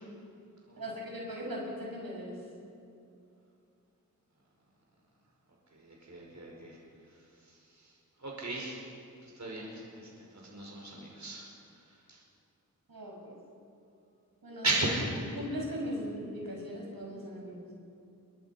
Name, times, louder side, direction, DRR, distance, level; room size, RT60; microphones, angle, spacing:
voice 1, 0.8-2.4 12.9-13.4 14.4-14.9 15.3-17.6, equal, 85° right, -2 dB, 6.4 m, -39 dB
voice 2, 5.7-8.9 9.2-12.2 14.6-15.0, right 2 dB, 50° right, -2 dB, 5.4 m, -37 dB
28.0 x 23.0 x 5.7 m, 2.7 s
wide cardioid pair, 75°, 34 cm